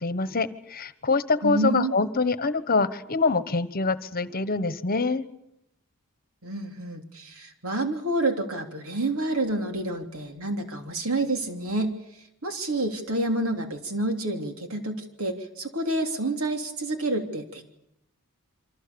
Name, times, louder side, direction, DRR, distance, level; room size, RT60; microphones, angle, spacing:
voice 1, 0.0-5.2, left 3 dB, 45° left, 13 dB, 1.2 m, -25 dB
voice 2, 1.4-1.9 6.4-11.9 12.4-17.6, right 2 dB, 70° right, 5 dB, 3.3 m, -28 dB
28.0 x 25.0 x 7.0 m, 0.80 s
head